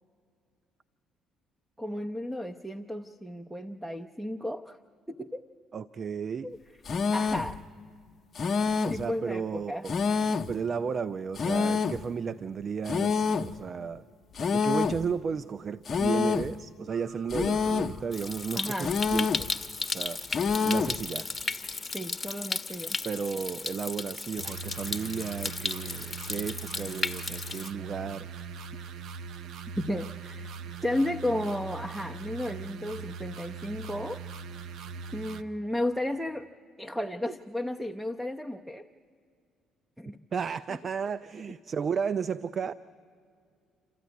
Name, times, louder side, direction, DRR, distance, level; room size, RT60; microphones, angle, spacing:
voice 1, 1.8-4.8 5.1-5.4 6.4-6.6 7.1-7.6 8.9-9.9 18.5-18.9 21.9-23.0 29.8-30.5 30.8-34.2 35.1-36.5 36.8-38.9 40.0-40.2, left 1 dB, 5° right, 8 dB, 0.8 m, -33 dB
voice 2, 5.7-6.5 8.8-9.9 10.5-14.0 14.5-19.5 19.9-20.2 20.6-21.3 23.0-28.3 40.3-42.7, right 6 dB, 45° right, 15 dB, 0.5 m, -33 dB
sound 1, 6.9-7.6 8.4-9.1 9.9-10.6 11.4-12.1 12.9-13.6 14.4-15.1 15.9-16.6 17.3-18.0 18.8-19.5 20.3-21.0, left 5 dB, 45° left, 0.7 m, -27 dB
sound 2, 16.9-19.7 24.4-35.4, right 5 dB, 70° right, 0.8 m, -42 dB
Stream, 18.1-27.7, left 3 dB, 20° left, 1.0 m, -35 dB
28.0 x 13.5 x 9.4 m, 2.3 s
supercardioid pair, 65°, 0 cm